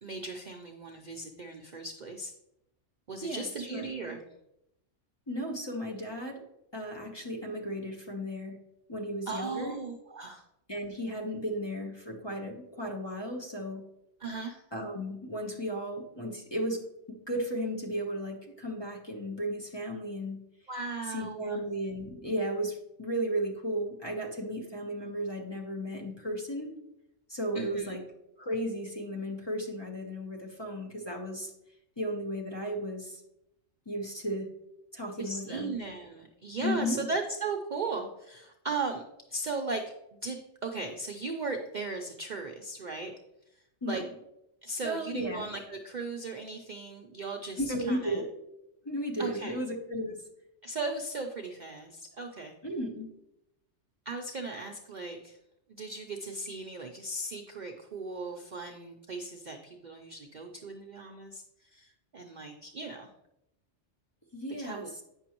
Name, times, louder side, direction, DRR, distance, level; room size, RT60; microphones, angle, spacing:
voice 1, 0.0-2.3 3.1-4.2 9.3-10.4 14.2-14.6 20.7-21.6 27.5-28.0 35.2-39.0 39.3-39.8 40.1-43.1 43.9-44.0 44.6-48.2 49.2-49.6 50.6-52.5 54.1-55.4 55.7-61.4 61.7-63.1 64.6-65.0, right 3 dB, 50° right, 2 dB, 0.6 m, -37 dB
voice 2, 3.2-3.9 5.3-6.4 6.7-8.6 8.9-9.8 10.7-13.8 14.7-20.4 21.0-26.7 27.3-28.0 28.4-31.5 32.0-33.2 33.9-34.5 34.9-35.8 36.6-37.0 43.8-44.1 44.8-45.5 47.6-48.2 48.8-50.2 52.6-53.1 64.3-65.0, equal, 25° left, -1 dB, 0.9 m, -35 dB
8.9 x 6.0 x 2.9 m, 0.85 s
omnidirectional pair, 1.3 m